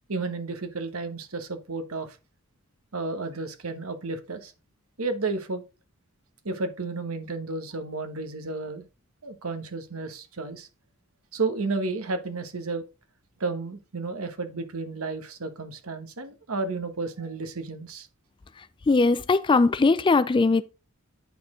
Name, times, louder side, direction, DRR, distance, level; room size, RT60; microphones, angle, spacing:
voice 1, 0.1-2.2 2.9-4.5 5.0-5.6 6.4-8.8 9.2-10.7 11.3-12.8 13.4-18.1, right 3 dB, 70° right, 1.2 m, -32 dB
voice 2, 18.9-20.6, left 3 dB, 20° left, 0.3 m, -20 dB
9.4 x 4.3 x 3.7 m
head